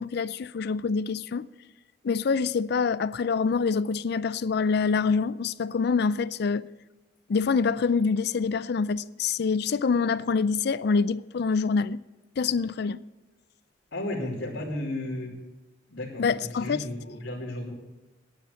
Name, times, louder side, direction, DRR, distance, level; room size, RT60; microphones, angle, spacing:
voice 1, 0.0-1.5 2.0-6.7 7.3-12.0 12.4-13.0 16.2-16.8, left 5 dB, 60° left, 0.4 m, -26 dB
voice 2, 13.9-15.3 15.9-17.7, left 1 dB, 85° left, 3.1 m, -34 dB
10.5 x 9.2 x 8.2 m
head